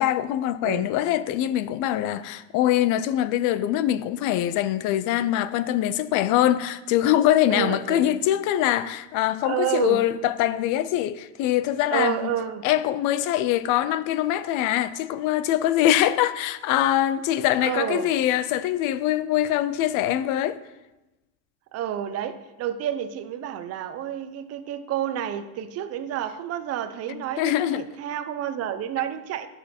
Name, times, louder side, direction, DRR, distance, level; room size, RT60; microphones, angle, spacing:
voice 1, 0.0-12.3 12.6-20.6 27.1-27.9, left 12 dB, 60° left, 0.5 m, -23 dB
voice 2, 7.5-8.2 9.4-10.0 11.9-12.7 17.6-18.1 21.7-29.5, right 10 dB, 45° right, 0.7 m, -29 dB
11.5 x 6.5 x 4.3 m
cardioid pair, 145°, 36 cm